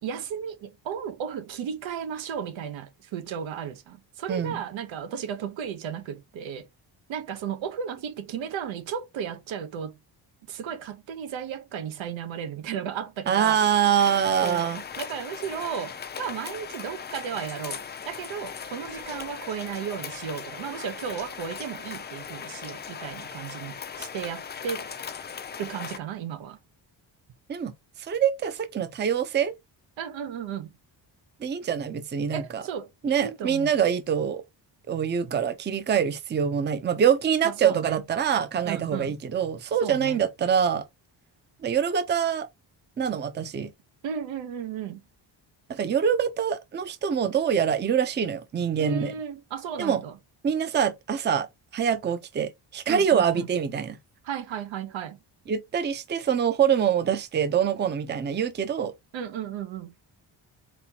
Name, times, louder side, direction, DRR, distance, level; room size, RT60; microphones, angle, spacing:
voice 1, 0.0-6.7 7.1-10.0 10.5-13.6 14.4-24.9 25.6-26.6 30.0-30.7 32.3-32.9 33.2-33.7 37.4-38.0 38.6-39.2 39.8-40.2 44.0-45.0 48.8-50.2 52.9-53.5 54.2-55.2 59.1-59.9, right 8 dB, 85° right, 1.0 m, -34 dB
voice 2, 4.3-4.6 13.3-14.8 27.5-27.7 28.0-29.5 31.4-32.6 33.0-34.4 34.9-40.8 41.6-42.5 43.0-43.7 45.7-49.1 49.8-50.0 50.4-51.5 51.7-54.0 55.5-58.9, right 8 dB, 25° right, 0.5 m, -25 dB
sound 1, 14.0-26.0, left 7 dB, 25° left, 0.4 m, -38 dB
4.2 x 4.1 x 2.8 m
cardioid pair, 160°, 45 cm